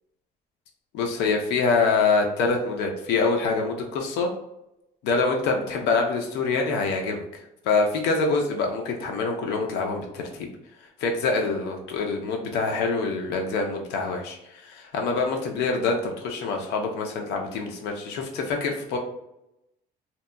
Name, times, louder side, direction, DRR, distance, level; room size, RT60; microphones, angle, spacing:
voice 1, 0.9-4.3 5.0-10.5 11.0-19.0, left 4 dB, 85° left, 2 dB, 0.6 m, -25 dB
2.8 x 2.2 x 2.2 m, 0.87 s
cardioid pair, 110°, 17 cm